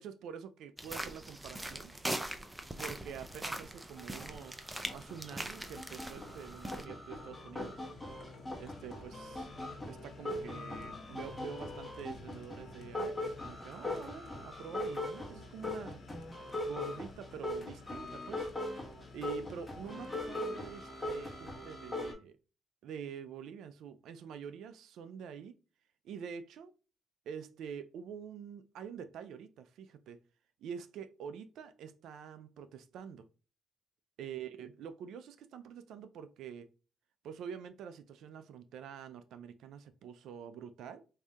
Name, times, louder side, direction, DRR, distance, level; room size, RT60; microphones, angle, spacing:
voice 1, 0.0-1.9 2.8-7.8 8.6-9.5 9.9-16.0 16.6-18.5 19.1-22.4 22.8-25.5 26.0-26.7 27.3-30.2 30.6-33.3 34.2-36.7 37.2-41.0, right 7 dB, 80° right, 0.4 m, -46 dB
sound 1, 0.8-6.9, right 1 dB, 15° right, 0.5 m, -41 dB
sound 2, 2.6-2.7 3.1-22.1, left 1 dB, 10° left, 1.2 m, -41 dB
sound 3, 5.6-21.4, left 3 dB, 55° left, 1.0 m, -55 dB
4.8 x 2.7 x 2.3 m
cardioid pair, 90°, 0 cm